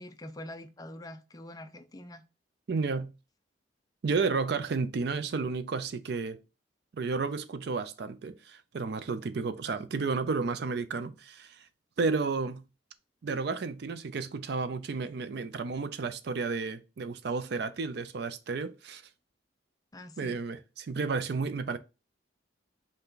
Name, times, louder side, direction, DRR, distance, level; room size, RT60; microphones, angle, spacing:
voice 1, 0.0-2.2 19.9-20.4, left 1 dB, 20° left, 0.4 m, -45 dB
voice 2, 2.7-3.1 4.0-6.4 6.9-11.7 12.0-12.6 13.2-19.0 20.2-21.8, right 4 dB, 55° right, 0.4 m, -32 dB
5.5 x 2.2 x 3.8 m
head